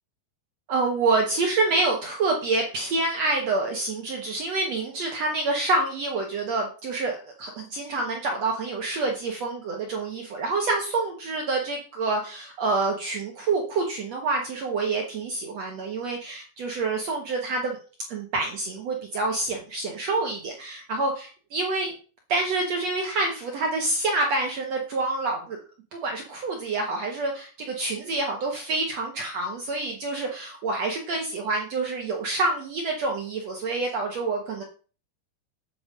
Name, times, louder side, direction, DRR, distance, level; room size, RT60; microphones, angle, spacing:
voice 1, 0.7-17.8 18.1-21.9 22.3-25.6 25.9-34.6, right 3 dB, 80° right, 1 dB, 1.4 m, -27 dB
9.0 x 5.3 x 6.5 m, 0.38 s
omnidirectional pair, 5.2 m